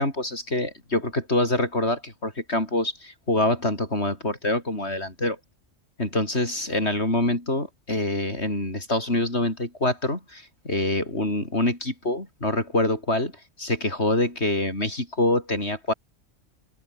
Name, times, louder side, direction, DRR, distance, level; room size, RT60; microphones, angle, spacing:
voice 1, 0.0-5.4 6.0-13.3 13.6-15.9, left 1 dB, 60° left, 6.5 m, -25 dB
omnidirectional pair, 1.3 m